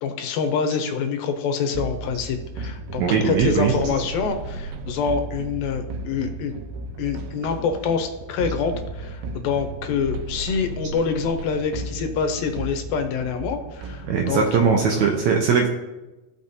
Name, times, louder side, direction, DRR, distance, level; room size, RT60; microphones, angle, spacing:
voice 1, 0.0-6.5 7.0-14.4 15.0-15.1, left 6 dB, 80° left, 6 dB, 2.6 m, -26 dB
sound 1, 1.7-15.0, right 2 dB, 90° right, 2.5 m, -34 dB
voice 2, 3.0-4.0 14.1-15.7, right 6 dB, 75° right, 1 dB, 1.8 m, -20 dB
14.5 x 5.9 x 2.7 m, 1.1 s
omnidirectional pair, 4.1 m